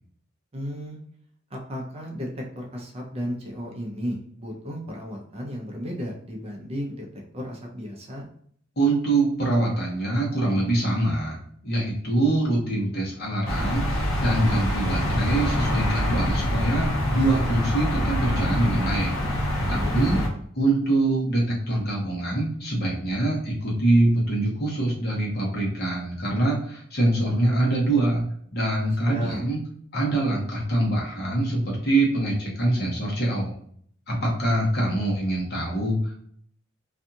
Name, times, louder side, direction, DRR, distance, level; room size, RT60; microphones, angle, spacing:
voice 1, 0.5-1.0 1.5-7.1 7.3-8.2 19.6-20.4 29.1-29.4, equal, 30° right, 0 dB, 0.5 m, -34 dB
voice 2, 8.8-11.4 11.6-19.4 19.7-20.2 20.6-28.2 28.5-29.6 29.9-33.5 34.1-36.2, right 2 dB, 50° left, -3 dB, 1.0 m, -24 dB
sound 1, 13.5-20.3, equal, 75° left, 0.7 m, -25 dB
2.6 x 2.3 x 2.7 m, 0.63 s
head